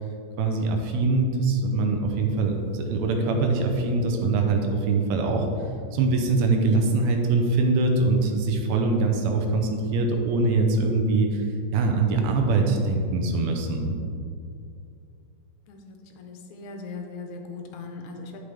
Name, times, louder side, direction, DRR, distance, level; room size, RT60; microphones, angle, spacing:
voice 1, 0.4-5.5 5.9-13.9, right 3 dB, 75° right, 3 dB, 1.7 m, -23 dB
sound 1, 2.3-4.4, left 1 dB, 55° left, 1.9 m, -44 dB
voice 2, 15.7-18.4, left 4 dB, 75° left, 3 dB, 1.8 m, -39 dB
8.3 x 5.5 x 3.4 m, 2.4 s
omnidirectional pair, 3.7 m